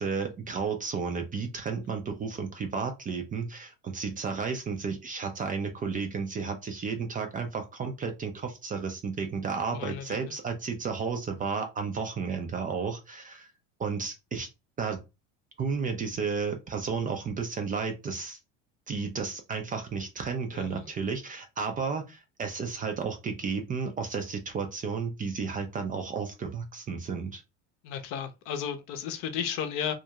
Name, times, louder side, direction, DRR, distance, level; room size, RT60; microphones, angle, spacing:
voice 1, 0.0-13.5 13.8-14.5 14.8-15.0 15.6-18.4 18.9-27.4, right 5 dB, 25° right, 0.4 m, -32 dB
voice 2, 9.7-10.2 20.5-20.9 27.8-29.9, left 8 dB, 60° left, 0.7 m, -34 dB
2.4 x 2.1 x 2.8 m
supercardioid pair, 110°, 38 cm